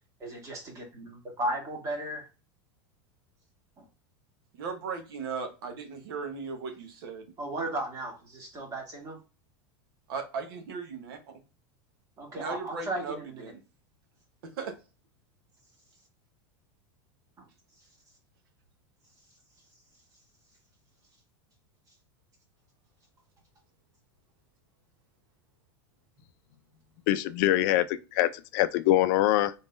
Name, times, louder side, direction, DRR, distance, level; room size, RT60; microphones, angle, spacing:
voice 1, 0.2-2.3 3.8-3.9 7.4-9.2 12.2-13.5 17.4-17.5, right 1 dB, 25° right, 1.9 m, -35 dB
voice 2, 4.5-7.3 10.1-11.4 12.3-13.2 13.4-13.6 14.4-14.8, right 5 dB, 80° right, 1.1 m, -37 dB
voice 3, 27.1-29.5, left 14 dB, 60° left, 0.4 m, -24 dB
3.9 x 3.6 x 2.5 m
supercardioid pair, 140°, 12 cm